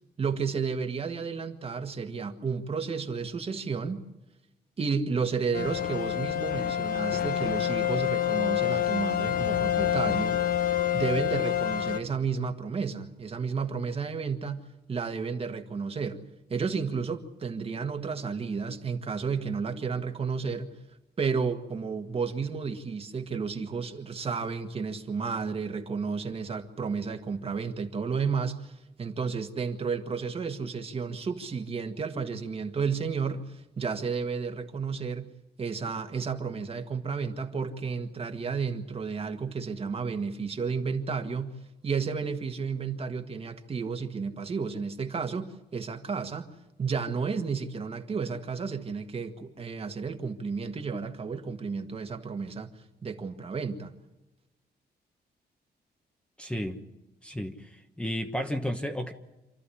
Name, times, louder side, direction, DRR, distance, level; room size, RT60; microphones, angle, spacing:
voice 1, 0.2-4.0 4.8-10.4 10.9-14.6 14.9-16.2 16.5-20.7 21.2-35.3 35.6-41.6 41.8-46.5 46.8-52.7 53.0-53.9, right 5 dB, 35° right, 1.7 m, -32 dB
sound 1, 5.5-12.0, left 10 dB, 55° left, 1.0 m, -27 dB
voice 2, 56.4-56.8 57.2-59.1, equal, 5° left, 1.2 m, -33 dB
27.5 x 13.5 x 9.9 m
wide cardioid pair, 160°, 17 cm